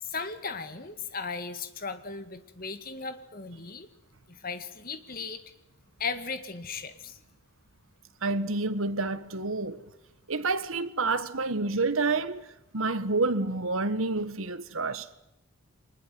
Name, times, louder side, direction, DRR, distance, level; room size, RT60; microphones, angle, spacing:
voice 1, 0.1-3.9 4.4-5.4 6.0-7.2, left 4 dB, 40° left, 2.1 m, -36 dB
voice 2, 8.2-9.9 10.3-15.1, right 3 dB, 70° right, 1.5 m, -29 dB
23.5 x 20.5 x 9.4 m
head